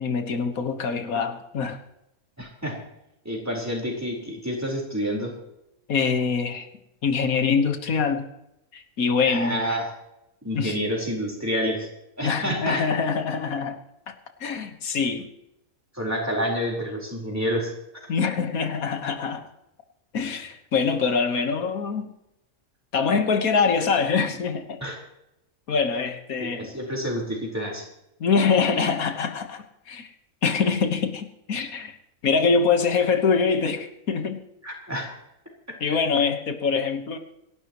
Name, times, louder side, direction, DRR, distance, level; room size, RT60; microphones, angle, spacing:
voice 1, 0.0-1.8 5.9-6.7 7.0-8.2 8.7-9.6 10.5-10.8 12.2-13.8 14.1-14.2 14.4-15.3 18.1-19.5 20.1-22.1 22.9-24.8 25.7-26.7 28.2-30.1 30.4-32.0 32.2-34.4 35.8-37.2, left 5 dB, 90° left, 7 dB, 1.8 m, -24 dB
voice 2, 2.4-2.8 3.2-5.3 9.2-9.9 10.4-11.9 12.2-12.9 15.9-17.7 24.8-25.0 26.4-27.8 34.6-35.1, equal, 10° right, -1 dB, 4.2 m, -28 dB
27.5 x 12.0 x 3.0 m, 0.85 s
omnidirectional pair, 1.4 m